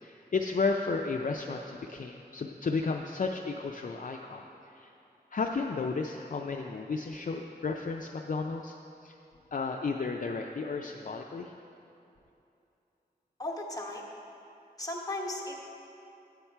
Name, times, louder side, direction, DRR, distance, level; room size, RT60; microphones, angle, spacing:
voice 1, 0.0-4.4 4.7-4.9 5.3-8.8 9.0-9.1 9.5-11.5, left 4 dB, 50° left, 2 dB, 0.4 m, -33 dB
voice 2, 13.4-14.1 14.8-15.7, left 1 dB, 20° left, -2 dB, 1.1 m, -36 dB
8.6 x 5.8 x 4.5 m, 2.7 s
wide cardioid pair, 55°, 17 cm